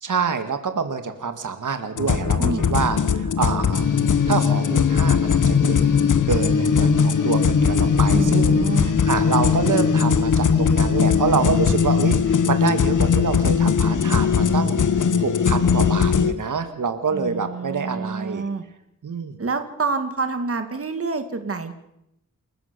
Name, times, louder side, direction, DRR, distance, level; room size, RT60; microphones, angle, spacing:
voice 1, 0.0-3.9 4.3-18.4 19.0-19.4, right 5 dB, 90° right, 8 dB, 1.9 m, -27 dB
sound 1, 2.0-16.3, left 6 dB, 85° left, 1.3 m, -19 dB
voice 2, 8.1-9.0 17.1-18.7 19.4-21.7, right 4 dB, 50° right, 8 dB, 2.0 m, -27 dB
29.0 x 14.0 x 6.8 m, 0.82 s
wide cardioid pair, 125°, 30 cm